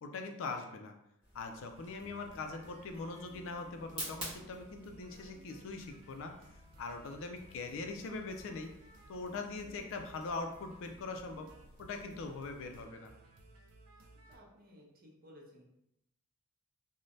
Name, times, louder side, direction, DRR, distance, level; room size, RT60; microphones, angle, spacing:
voice 1, 0.0-0.9 1.3-6.3 6.8-8.7 9.1-11.5 11.8-13.1, left 3 dB, 60° left, 5 dB, 0.4 m, -42 dB
sound 1, 1.2-12.8, right 1 dB, 25° right, 1.3 m, -52 dB
sound 2, 1.7-14.4, right 2 dB, 90° right, 0.4 m, -59 dB
voice 2, 14.3-15.6, equal, 45° right, -2 dB, 0.7 m, -57 dB
3.1 x 2.1 x 2.6 m, 0.81 s
head